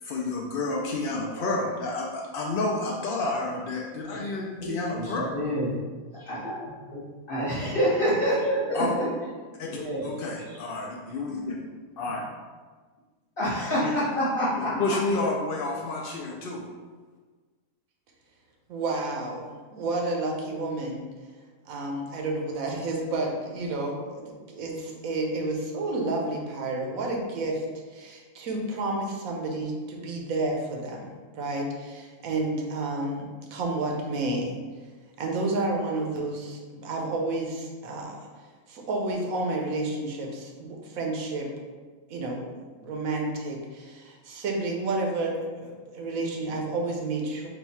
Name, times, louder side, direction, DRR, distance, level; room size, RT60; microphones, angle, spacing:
voice 1, 0.0-5.4 8.7-8.9 9.6-11.5 12.0-12.3 13.8-13.9 14.5-16.6, left 2 dB, 75° left, -2 dB, 0.5 m, -30 dB
voice 2, 4.6-5.7 6.3-9.1 9.6-10.2 10.5-10.6 13.4-15.0, equal, 40° left, -11 dB, 1.2 m, -28 dB
voice 3, 18.7-21.1 21.7-27.6 27.9-34.6 35.2-41.5 42.1-42.5 42.8-47.5, right 2 dB, 80° right, 0 dB, 1.1 m, -30 dB
4.0 x 2.3 x 4.1 m, 1.4 s
omnidirectional pair, 1.5 m